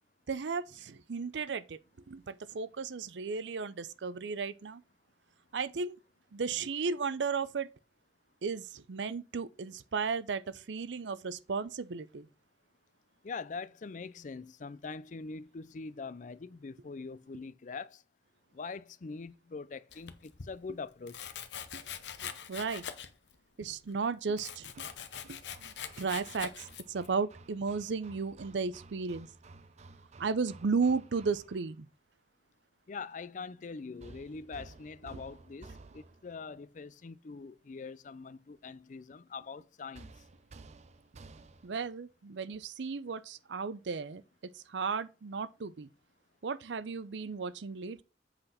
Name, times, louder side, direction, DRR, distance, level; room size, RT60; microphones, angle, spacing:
voice 1, 0.3-1.8 2.1-4.8 5.5-6.0 6.3-7.7 8.4-12.3 21.7-21.8 22.2-22.8 23.6-24.8 25.2-29.3 30.2-31.9 35.1-35.2 41.6-45.9 46.4-48.0, right 5 dB, 90° right, 0.5 m, -35 dB
voice 2, 13.2-18.0 18.5-21.3 32.9-40.1, left 4 dB, 45° left, 0.4 m, -43 dB
Domestic sounds home sounds, 19.9-20.5 21.1-23.3 23.6-27.1, left 8 dB, 80° left, 0.9 m, -43 dB
Hammer, 24.4-31.8 34.0-36.4 39.9-41.9, right 3 dB, 40° right, 0.5 m, -54 dB
7.9 x 4.1 x 5.7 m
head